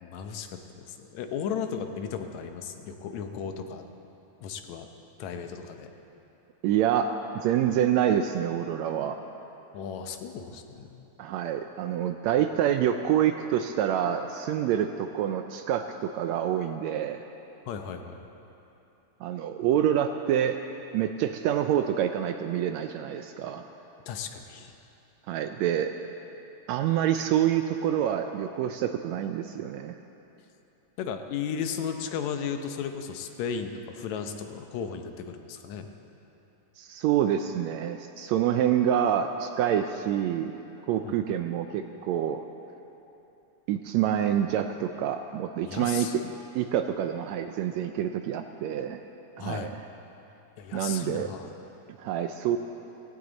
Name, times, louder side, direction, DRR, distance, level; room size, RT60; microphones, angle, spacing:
voice 1, 0.0-3.8 4.4-4.9 5.2-5.9 9.7-11.0 17.7-18.3 24.1-24.7 31.0-35.9 41.0-41.1 45.6-46.3 49.4-49.7 50.6-51.5, left 7 dB, 75° left, 6 dB, 2.0 m, -35 dB
voice 2, 6.6-9.2 11.2-17.2 19.2-20.6 20.9-23.6 25.3-25.9 26.7-29.9 36.8-40.6 40.9-42.4 43.7-46.2 46.5-49.0 49.4-49.8 50.7-51.3 52.0-52.6, right 10 dB, 80° right, 7 dB, 1.6 m, -27 dB
17.0 x 16.0 x 4.0 m, 3.0 s
omnidirectional pair, 3.5 m